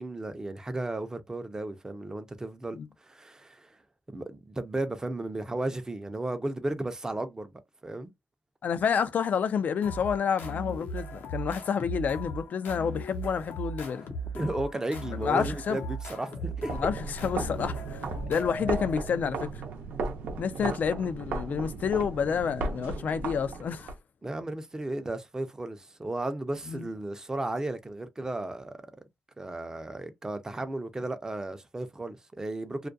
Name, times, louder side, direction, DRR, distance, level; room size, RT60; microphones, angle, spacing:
voice 1, 0.0-3.8 4.1-7.5 7.8-8.1 14.3-16.8 20.6-20.7 24.2-28.8 29.4-32.9, right 2 dB, 20° right, 0.5 m, -34 dB
voice 2, 8.6-14.1 15.2-15.8 16.8-19.6 20.4-23.9 26.7-26.9, left 7 dB, 60° left, 0.4 m, -29 dB
sound 1, 9.8-19.3, equal, 80° left, 0.8 m, -38 dB
sound 2, 16.6-24.0, right 3 dB, 85° right, 0.7 m, -36 dB
2.3 x 2.2 x 2.5 m
cardioid pair, 95°, 3 cm